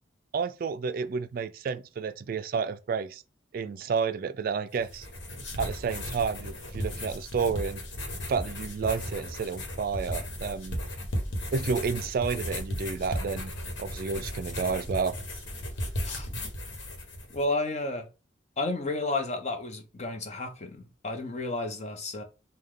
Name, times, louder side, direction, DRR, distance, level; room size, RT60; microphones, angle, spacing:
voice 1, 0.3-3.2 3.5-5.1 5.6-7.8 8.3-10.8 11.5-13.5 13.8-15.2, right 5 dB, 50° right, 0.3 m, -30 dB
sound 1, 4.7-17.4, equal, 85° left, 1.2 m, -35 dB
voice 2, 17.3-18.1 18.6-22.2, left 2 dB, 35° left, 0.8 m, -32 dB
5.4 x 2.2 x 3.6 m
head